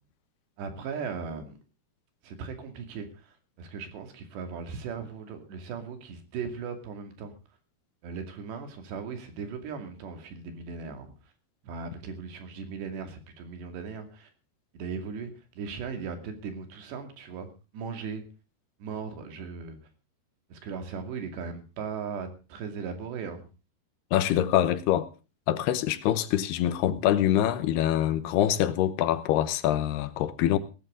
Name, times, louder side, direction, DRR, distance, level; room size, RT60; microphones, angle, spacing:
voice 1, 0.6-1.6 2.2-7.3 8.0-11.1 11.6-14.3 14.7-18.2 18.8-19.8 20.5-23.5, right 5 dB, 85° right, 4.6 m, -38 dB
voice 2, 24.1-25.1 25.5-30.6, left 12 dB, 80° left, 2.9 m, -25 dB
18.0 x 14.0 x 3.8 m
omnidirectional pair, 4.8 m